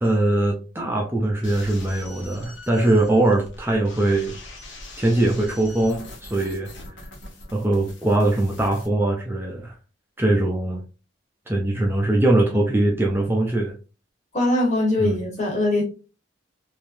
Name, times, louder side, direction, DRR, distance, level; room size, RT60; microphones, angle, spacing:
voice 1, 0.0-4.4 5.0-6.7 7.0-7.1 7.5-9.7 10.2-10.8 11.5-13.7 15.0-15.2, right 2 dB, 10° right, 0.5 m, -21 dB
sound 1, 1.4-8.9, left 2 dB, 80° left, 1.2 m, -42 dB
voice 2, 14.3-15.8, left 1 dB, 35° left, 1.5 m, -22 dB
3.4 x 2.8 x 2.6 m
head